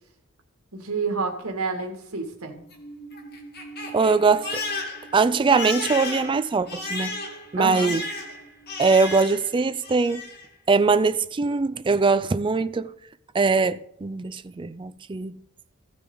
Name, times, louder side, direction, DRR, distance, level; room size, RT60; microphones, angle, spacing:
voice 1, 0.7-2.6 7.6-8.0, right 4 dB, 75° right, 2.1 m, -29 dB
Crying sobbing, 2.5-9.5 9.8-10.5, left 3 dB, 45° left, 1.9 m, -34 dB
voice 2, 3.9-4.6 5.1-7.1 7.5-8.0 8.8-10.2 10.7-12.9 13.3-15.4, right 4 dB, 20° right, 0.4 m, -22 dB
16.0 x 6.2 x 3.9 m
head